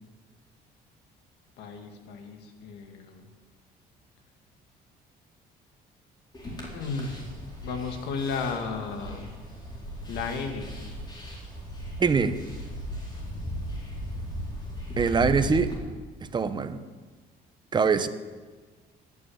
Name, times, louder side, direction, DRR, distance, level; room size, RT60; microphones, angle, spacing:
voice 1, 1.6-3.3 6.6-7.3 7.6-9.3 10.1-10.8, left 5 dB, 85° left, 1.9 m, -34 dB
sound 1, 6.3-15.8, equal, 25° left, 4.0 m, -37 dB
voice 2, 12.0-12.4 15.0-15.7 16.2-16.8 17.7-18.1, right 5 dB, 25° right, 0.9 m, -23 dB
12.0 x 9.3 x 8.5 m
cardioid pair, 110°, 17 cm